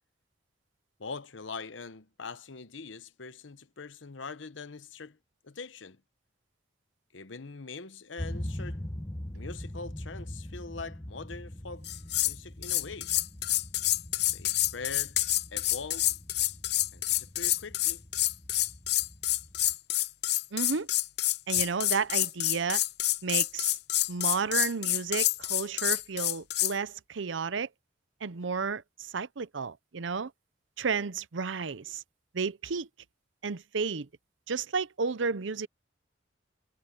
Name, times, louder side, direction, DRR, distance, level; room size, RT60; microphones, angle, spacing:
voice 1, 1.0-5.2 5.4-6.0 7.1-8.8 9.3-11.9 12.2-13.2 14.3-15.2 15.5-16.1 16.9-18.0 21.6-21.7, left 4 dB, 80° left, 1.0 m, -42 dB
sound 1, 8.2-19.7, left 1 dB, 15° left, 1.1 m, -42 dB
sound 2, 11.8-12.4 12.6-26.7, left 16 dB, 60° left, 0.7 m, -28 dB
voice 2, 20.5-20.9 21.5-22.8 23.2-23.8 24.1-27.7 28.2-30.3 30.8-32.0 32.3-32.9 33.4-34.1 34.5-35.7, right 5 dB, 80° right, 0.7 m, -32 dB
head